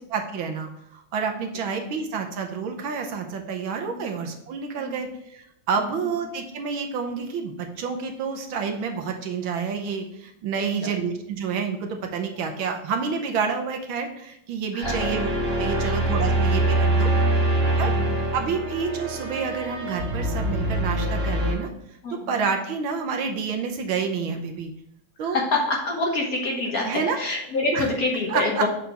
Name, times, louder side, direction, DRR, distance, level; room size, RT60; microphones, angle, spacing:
voice 1, 0.0-15.3 15.6-17.1 17.8-17.9 18.3-21.7 22.3-24.7 25.2-25.4 26.8-27.2 27.7-27.9 28.3-28.6, right 5 dB, 70° right, 4 dB, 1.6 m, -29 dB
voice 2, 10.6-10.9 14.7-15.1 15.7-16.0 16.2-16.4 17.2-17.5 17.8-18.2 22.0-22.3 25.2-26.9 27.2-28.7, left 2 dB, 50° left, -1 dB, 1.5 m, -27 dB
sound 1, 14.8-21.5, right 1 dB, 40° right, 3.3 m, -24 dB
6.9 x 4.3 x 5.0 m, 0.78 s
omnidirectional pair, 2.3 m